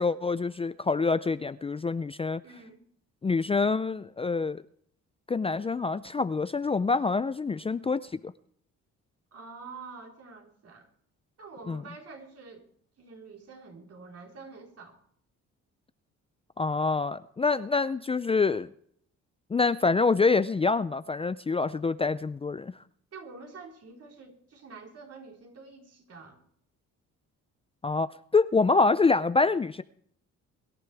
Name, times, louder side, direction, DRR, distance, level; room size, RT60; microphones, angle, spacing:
voice 1, 0.0-2.4 3.2-4.6 5.3-8.3 11.7-11.8 16.6-18.7 19.5-22.7 27.8-29.8, left 4 dB, 20° left, 14 dB, 0.5 m, -26 dB
voice 2, 2.4-2.8 9.3-10.9 11.4-12.7 13.0-15.0 23.1-26.4, right 4 dB, 55° right, 1 dB, 4.3 m, -47 dB
24.0 x 11.0 x 3.5 m, 0.64 s
cardioid pair, 90°, 30 cm